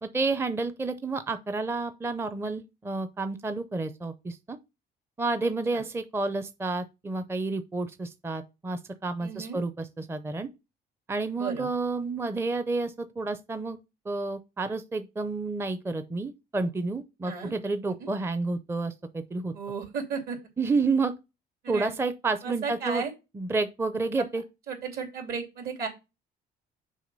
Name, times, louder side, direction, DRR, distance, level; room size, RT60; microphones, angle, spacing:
voice 1, 0.0-4.6 5.2-10.5 11.1-13.8 14.1-19.5 20.6-21.2 21.7-23.0 23.3-24.4, right 3 dB, 15° right, 0.5 m, -30 dB
voice 2, 9.2-9.6 11.4-11.7 17.2-17.5 18.0-18.1 19.5-20.4 21.6-21.9 22.4-23.1 24.2-24.3 24.7-25.9, right 5 dB, 65° right, 2.8 m, -34 dB
6.3 x 4.5 x 5.3 m
cardioid pair, 110°, 17 cm